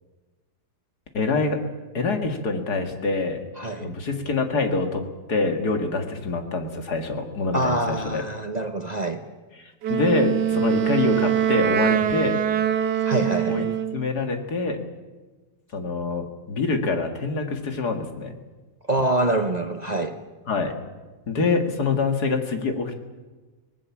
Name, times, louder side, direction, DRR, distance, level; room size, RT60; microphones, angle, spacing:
voice 1, 1.1-1.6 1.9-3.4 3.8-5.0 5.3-8.2 9.6-12.4 13.5-13.6 13.9-14.8 15.7-18.3 20.5-20.7 21.3-23.0, left 3 dB, 70° left, 5 dB, 2.5 m, -25 dB
voice 2, 3.6-3.9 7.5-9.2 13.0-13.7 18.9-20.1, right 2 dB, 30° right, 6 dB, 1.0 m, -25 dB
Wind instrument woodwind instrument, 9.8-14.0, right 9 dB, 85° right, 1.6 m, -23 dB
24.0 x 19.0 x 7.3 m, 1.2 s
omnidirectional pair, 1.7 m